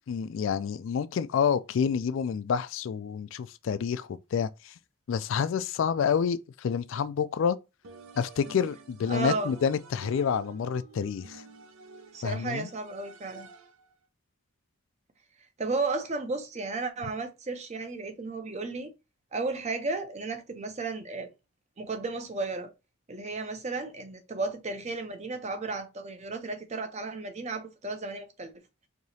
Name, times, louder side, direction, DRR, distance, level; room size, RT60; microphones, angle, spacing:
voice 1, 0.1-4.7 5.1-7.6 8.2-11.4 12.2-12.7, left 7 dB, 60° left, 0.3 m, -28 dB
sound 1, 7.8-13.9, right 3 dB, 75° right, 0.7 m, -49 dB
voice 2, 9.1-9.5 12.1-13.5 15.6-18.9 19.3-21.3 21.8-22.7 23.1-28.5, right 3 dB, 30° right, 0.6 m, -33 dB
4.7 x 2.8 x 2.7 m
head